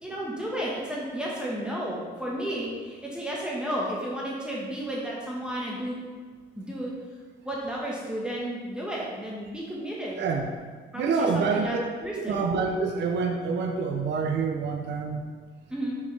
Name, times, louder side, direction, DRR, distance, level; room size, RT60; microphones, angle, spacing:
voice 1, 0.0-6.0 6.6-6.9 7.4-10.2 10.9-11.8 12.0-12.4 15.7-16.0, right 1 dB, 5° right, -5 dB, 1.3 m, -32 dB
voice 2, 10.2-10.5 11.0-11.8 12.2-15.2, right 5 dB, 60° right, 3 dB, 0.6 m, -27 dB
6.3 x 5.4 x 3.3 m, 1.5 s
cardioid pair, 90°, 20 cm